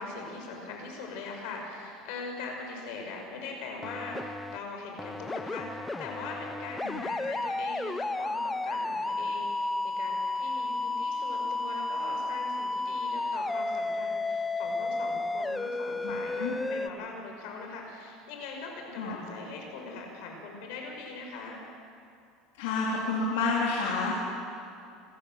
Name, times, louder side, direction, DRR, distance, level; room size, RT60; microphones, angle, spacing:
voice 1, 0.0-21.6, left 3 dB, 70° left, 1 dB, 5.8 m, -41 dB
sound 1, 3.8-4.6 5.0-16.9, left 2 dB, 10° left, 0.5 m, -32 dB
voice 2, 22.6-24.1, left 4 dB, 90° left, -4 dB, 3.6 m, -29 dB
27.0 x 14.0 x 7.5 m, 2.5 s
supercardioid pair, 135°, 0 cm